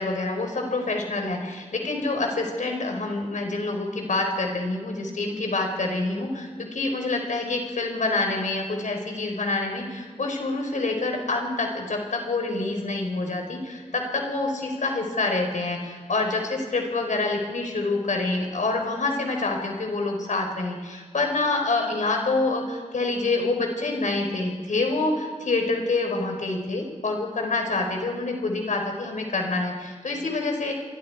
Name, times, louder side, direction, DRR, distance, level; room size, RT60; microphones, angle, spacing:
voice 1, 0.0-30.7, left 3 dB, 80° left, 3 dB, 4.6 m, -27 dB
30.0 x 23.5 x 4.8 m, 1.5 s
wide cardioid pair, 80°, 13 cm